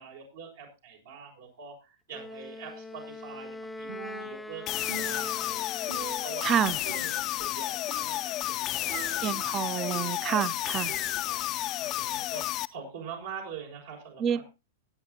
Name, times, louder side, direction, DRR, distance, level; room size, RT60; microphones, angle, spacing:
voice 1, 0.0-5.9 6.2-7.1 7.4-9.5 9.9-10.1 11.3-14.4, right 6 dB, 75° right, 5.8 m, -44 dB
Wind instrument woodwind instrument, 2.1-6.3, left 2 dB, 5° left, 0.8 m, -42 dB
Percussion, 3.9-4.6 4.9-6.6 6.9-7.6 7.9-8.4 8.9-10.5 10.9-11.6, right 7 dB, 55° right, 2.1 m, -44 dB
sound 1, 4.7-12.7, left 15 dB, 40° left, 0.6 m, -31 dB
voice 2, 6.4-6.8 9.2-10.9 14.2-14.4, right 9 dB, 30° right, 0.7 m, -28 dB
20.5 x 8.8 x 2.8 m
hypercardioid pair, 120°, 0 cm